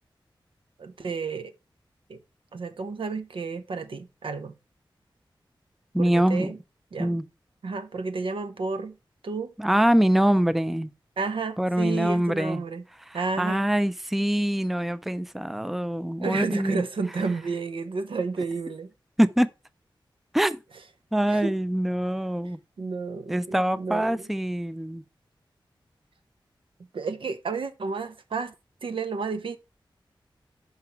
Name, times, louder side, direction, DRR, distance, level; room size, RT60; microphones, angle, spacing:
voice 1, 0.8-1.5 2.1-2.2 2.5-4.5 6.0-6.6 6.9-7.2 7.6-9.0 9.2-9.5 11.2-12.8 13.1-13.7 16.2-18.9 21.3-21.5 22.8-24.2 26.9-28.5 28.8-29.6, right 4 dB, 80° right, 0.9 m, -31 dB
voice 2, 5.9-6.5 7.0-7.2 9.6-10.9 11.6-12.6 13.1-16.8 19.2-19.5 20.3-20.6 21.1-22.6 23.3-25.0, right 1 dB, ahead, 0.4 m, -24 dB
5.8 x 5.7 x 4.4 m
wide cardioid pair, 90°, 9 cm